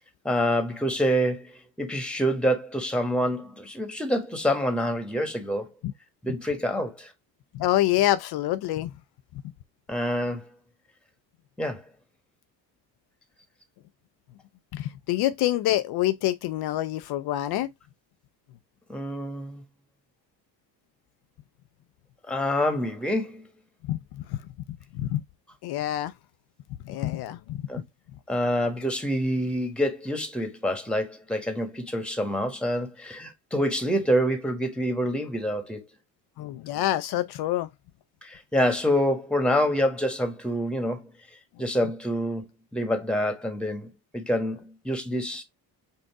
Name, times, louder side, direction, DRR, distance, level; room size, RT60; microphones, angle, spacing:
voice 1, 0.2-1.5 1.8-5.7 6.2-7.1 9.9-10.5 11.6-11.8 18.9-19.6 22.3-23.5 27.7-27.8 28.3-35.8 38.2-41.1 41.6-42.5 42.7-45.4, equal, ahead, 1.2 m, -27 dB
voice 2, 7.5-8.9 14.7-17.7 23.8-24.4 24.9-25.2 25.6-26.1 26.8-27.6 36.4-37.7, left 14 dB, 50° left, 0.5 m, -26 dB
5.4 x 2.6 x 3.4 m
hypercardioid pair, 55°, 49 cm